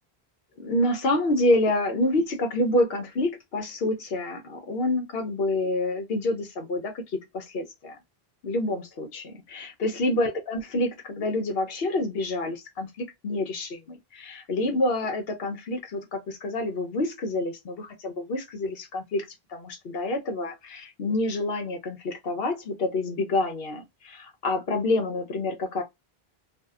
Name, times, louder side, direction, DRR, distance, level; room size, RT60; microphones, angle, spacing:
voice 1, 0.6-8.0 8.4-19.2 19.5-25.8, left 2 dB, 75° left, 1.0 m, -27 dB
2.7 x 2.0 x 2.3 m
omnidirectional pair, 1.0 m